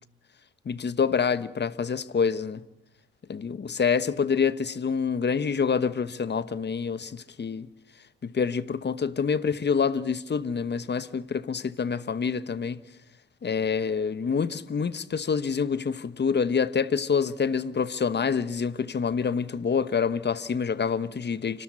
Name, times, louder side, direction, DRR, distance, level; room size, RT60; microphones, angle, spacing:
voice 1, 0.6-2.6 3.3-7.7 8.2-12.8 13.4-21.6, left 6 dB, 35° left, 1.2 m, -27 dB
29.5 x 13.0 x 9.8 m
cardioid pair, 90°, 30 cm